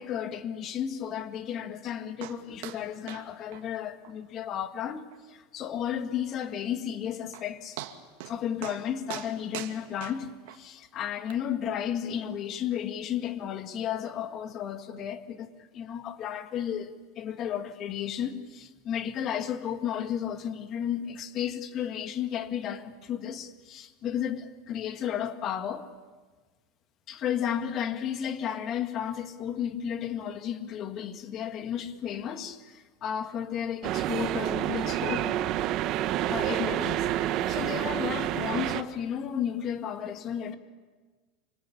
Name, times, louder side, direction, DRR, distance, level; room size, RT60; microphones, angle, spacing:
voice 1, 0.0-7.8 8.2-25.9 27.1-35.4 36.3-37.1 37.5-40.6, left 9 dB, 30° left, 1.9 m, -33 dB
sound 1, 2.2-2.4 2.6-2.8 3.1-3.3 3.5-3.6 4.0-4.1 4.5-4.6 5.1-5.2 6.9-7.0 7.3-7.5 7.8-8.3 8.6-8.8 9.1-10.6 11.3-11.4, right 14 dB, 65° right, 2.2 m, -40 dB
sound 2, 33.8-38.8, right 12 dB, 35° right, 1.2 m, -28 dB
26.5 x 25.5 x 8.6 m
supercardioid pair, 165°, 0 cm